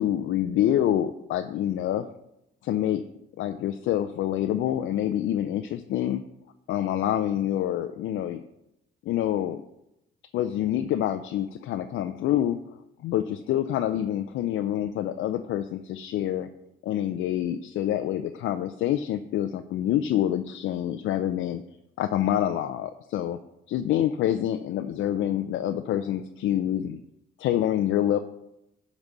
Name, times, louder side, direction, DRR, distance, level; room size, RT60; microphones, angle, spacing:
voice 1, 0.0-2.0 2.6-3.0 3.4-6.2 6.7-8.4 9.0-9.6 10.3-12.6 13.0-16.5 16.8-21.6 22.0-23.4 23.7-27.0 27.4-28.2, left 11 dB, 80° left, 7 dB, 0.5 m, -26 dB
10.5 x 4.1 x 6.1 m, 0.85 s
cardioid pair, 90°, 20 cm